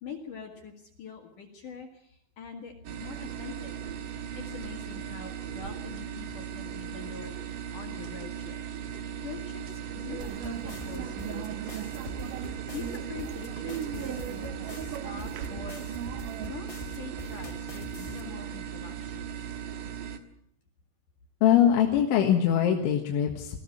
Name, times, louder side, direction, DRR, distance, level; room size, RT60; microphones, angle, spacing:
voice 1, 0.0-3.8 4.3-8.6 9.2-11.5 11.8-12.1 12.7-15.8 16.5-19.3, left 6 dB, 55° left, 3 dB, 3.0 m, -44 dB
sound 1, 2.8-20.2, right 9 dB, 65° right, 2.4 m, -38 dB
sound 2, 10.1-16.5, right 11 dB, 90° right, 1.8 m, -39 dB
sound 3, 10.2-18.2, left 2 dB, 25° left, 2.1 m, -43 dB
voice 2, 21.4-23.6, left 9 dB, 90° left, 2 dB, 4.0 m, -22 dB
21.0 x 15.5 x 8.8 m, 0.72 s
omnidirectional pair, 5.3 m